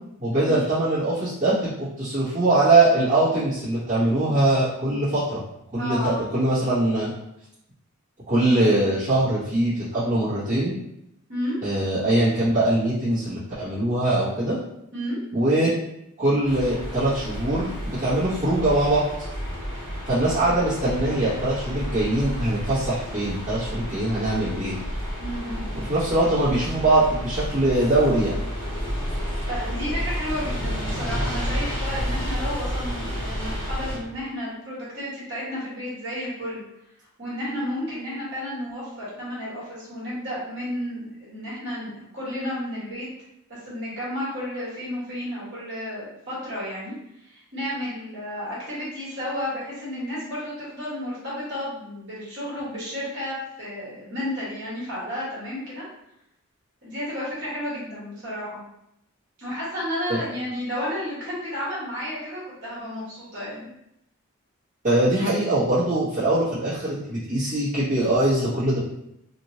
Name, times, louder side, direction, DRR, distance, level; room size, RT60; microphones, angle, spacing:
voice 1, 0.2-5.4 5.7-7.1 8.3-10.7 11.6-14.6 15.3-15.7 16.2-19.1 20.1-24.7 25.8-28.4 60.1-60.2 64.8-68.8, right 1 dB, 35° right, -14 dB, 1.1 m, -22 dB
voice 2, 5.8-6.2 11.3-11.6 14.9-15.2 25.2-25.8 29.5-36.6 37.2-43.1 43.5-46.9 47.2-55.8 56.8-58.6 59.4-63.7, equal, 55° right, -8 dB, 1.5 m, -32 dB
sound 1, 16.4-34.0, equal, 20° left, 1.4 m, -31 dB
3.0 x 2.5 x 2.8 m, 0.81 s
head